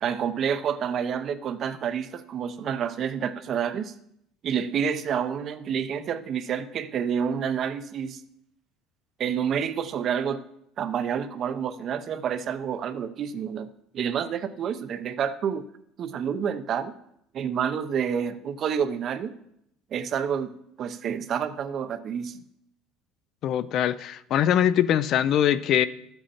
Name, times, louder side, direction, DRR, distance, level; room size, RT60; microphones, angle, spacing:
voice 1, 0.0-3.9 4.4-8.2 9.2-10.4 10.8-13.7 13.9-15.6 16.0-16.9 17.3-19.3 19.9-20.5 20.8-22.4, right 7 dB, 40° right, 12 dB, 0.6 m, -28 dB
voice 2, 23.4-25.9, left 10 dB, 45° left, 15 dB, 0.4 m, -22 dB
11.5 x 7.9 x 4.3 m, 0.76 s
cardioid pair, 145°, 0 cm